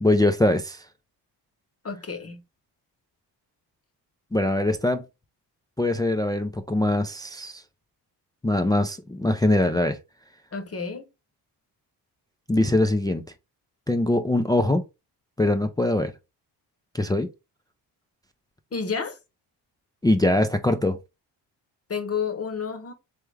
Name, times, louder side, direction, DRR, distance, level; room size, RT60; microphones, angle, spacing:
voice 1, 0.0-0.8 4.3-5.0 5.8-7.6 8.4-10.0 12.5-13.2 13.9-14.8 15.4-16.1 16.9-17.3 20.0-21.0, left 1 dB, 10° left, 0.4 m, -22 dB
voice 2, 1.8-2.4 10.5-11.0 18.7-19.2 21.9-22.9, left 6 dB, 35° left, 0.9 m, -30 dB
3.5 x 3.4 x 3.2 m
cardioid pair, 80°, 43 cm